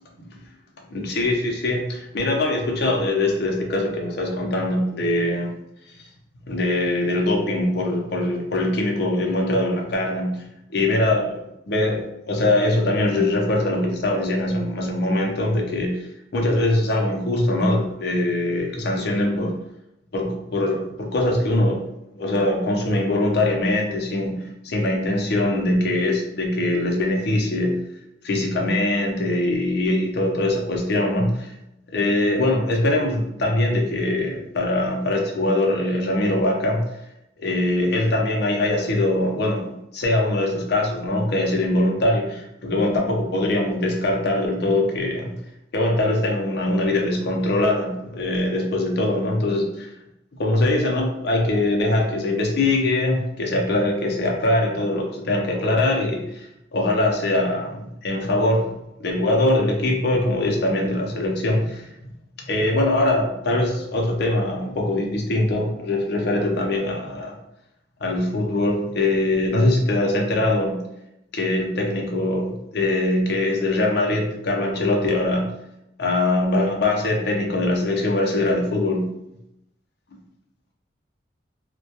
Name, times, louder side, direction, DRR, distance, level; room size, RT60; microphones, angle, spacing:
voice 1, 0.9-5.5 6.5-10.4 10.7-11.4 11.7-16.1 16.3-19.5 20.1-21.8 22.1-24.3 24.6-27.8 28.2-31.5 31.9-36.9 37.4-45.4 45.7-49.9 50.4-56.5 56.7-58.7 59.0-61.9 62.5-67.3 68.0-70.8 71.3-75.6 76.0-79.1, left 1 dB, 60° left, 0 dB, 0.5 m, -22 dB
2.2 x 2.2 x 2.8 m, 0.85 s
head